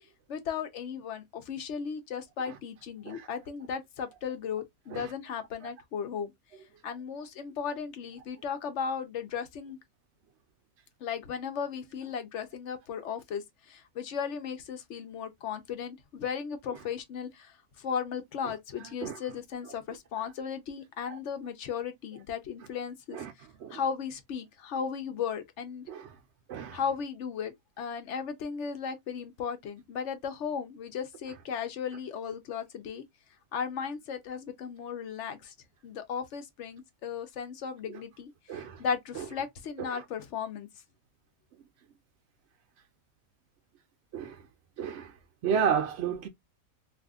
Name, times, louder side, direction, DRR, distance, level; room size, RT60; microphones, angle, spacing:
voice 1, 0.3-6.3 6.8-9.8 11.0-23.2 23.7-25.9 26.7-33.0 33.5-35.5 35.8-40.7, left 7 dB, 60° left, 0.9 m, -36 dB
voice 2, 26.5-26.8 38.5-38.8 39.2-39.3 39.8-40.0 44.1-44.4 44.8-45.1 45.4-46.3, right 7 dB, 65° right, 0.7 m, -32 dB
2.7 x 2.5 x 3.4 m
omnidirectional pair, 1.5 m